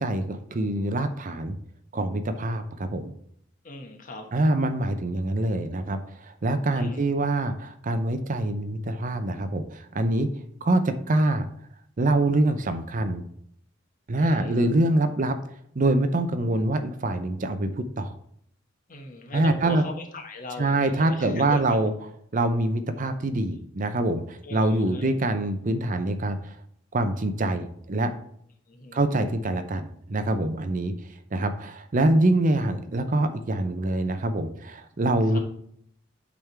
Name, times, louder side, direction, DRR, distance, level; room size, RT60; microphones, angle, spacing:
voice 1, 0.0-1.6 1.9-3.1 4.3-10.3 10.6-11.5 12.0-13.3 14.1-15.4 15.8-17.7 18.0-18.1 19.3-19.8 20.6-21.9 22.3-26.6 26.9-28.1 28.9-30.9 31.3-35.4, right 2 dB, 45° right, 9 dB, 0.6 m, -25 dB
voice 2, 3.6-4.3 6.7-7.1 14.2-14.7 18.9-21.8 24.4-25.1 28.7-29.0 35.3-35.4, left 2 dB, 45° left, 3 dB, 1.2 m, -39 dB
8.4 x 3.7 x 4.5 m, 0.68 s
head